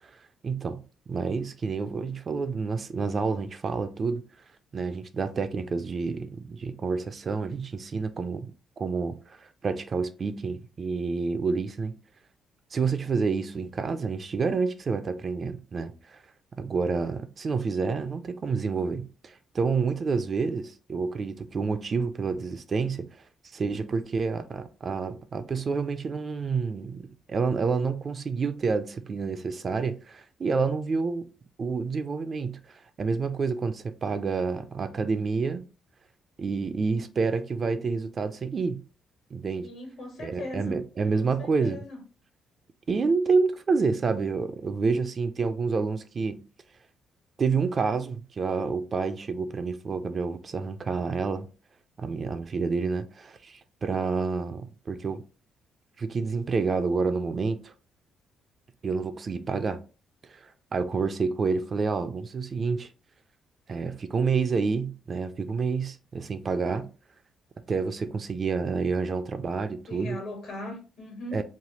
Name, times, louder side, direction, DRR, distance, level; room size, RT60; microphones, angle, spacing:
voice 1, 0.4-4.2 4.7-8.5 8.8-12.0 12.7-16.2 16.6-23.1 23.5-31.3 31.6-35.6 36.4-38.8 39.3-39.7 40.2-41.8 42.9-46.4 47.4-51.5 52.0-55.2 56.0-57.7 58.8-59.8 60.3-62.9 63.7-66.9 67.7-70.2 71.3-71.4, right 4 dB, 40° right, 0.3 m, -28 dB
voice 2, 39.6-40.8 41.2-42.0 69.9-71.4, left 2 dB, 70° left, 1.2 m, -39 dB
3.2 x 2.0 x 2.8 m
cardioid pair, 90°, 0 cm